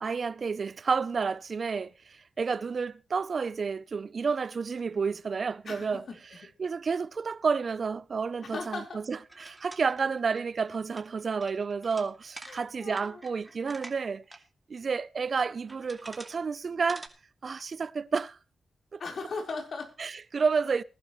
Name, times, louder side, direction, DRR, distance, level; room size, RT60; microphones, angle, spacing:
voice 1, 0.0-6.0 6.6-14.2 14.7-17.1 17.4-18.4 18.9-19.0 20.0-20.8, right 5 dB, 60° right, 0.6 m, -30 dB
voice 2, 5.6-6.5 8.4-9.0 10.0-10.1 12.4-13.2 19.0-19.9, left 4 dB, 65° left, 4.3 m, -38 dB
sound 1, 9.1-14.4 14.8-14.9 15.5-16.4 16.7-17.1, right 2 dB, 25° right, 2.6 m, -48 dB
20.0 x 11.5 x 3.2 m
cardioid pair, 50°, 0 cm